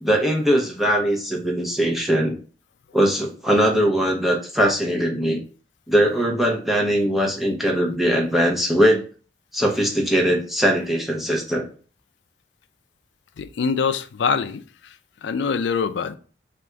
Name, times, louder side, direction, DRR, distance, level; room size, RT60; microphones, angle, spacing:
voice 1, 0.0-2.4 2.9-5.4 5.9-9.0 9.5-11.7, equal, ahead, 0.8 m, -20 dB
voice 2, 13.4-14.6 15.2-16.2, left 5 dB, 85° left, 0.4 m, -24 dB
3.5 x 2.5 x 4.4 m
head